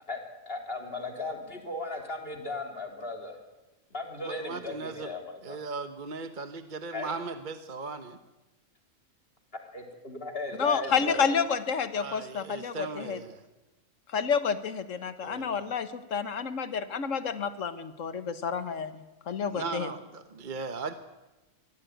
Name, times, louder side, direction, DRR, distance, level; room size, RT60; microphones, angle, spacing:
voice 1, 0.5-3.4 3.9-5.6 6.9-7.1 9.7-11.3, left 2 dB, 45° left, 3 dB, 3.7 m, -36 dB
voice 2, 4.2-5.2 5.4-8.2 12.0-13.4 15.2-15.6 19.5-20.9, right 4 dB, 40° right, 9 dB, 1.1 m, -38 dB
voice 3, 10.6-13.2 14.1-19.9, left 6 dB, 65° left, 12 dB, 1.6 m, -30 dB
24.0 x 16.5 x 9.3 m, 1.0 s
omnidirectional pair, 1.4 m